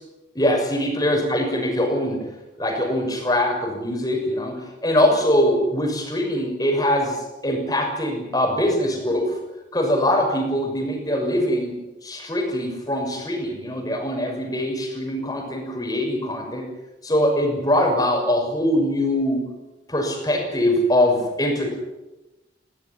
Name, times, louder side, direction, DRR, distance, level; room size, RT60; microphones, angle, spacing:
voice 1, 0.3-2.2 2.6-9.4 9.7-16.7 17.0-19.5 19.9-21.7, left 1 dB, 20° left, 2 dB, 6.3 m, -22 dB
20.0 x 17.5 x 9.8 m, 1.0 s
head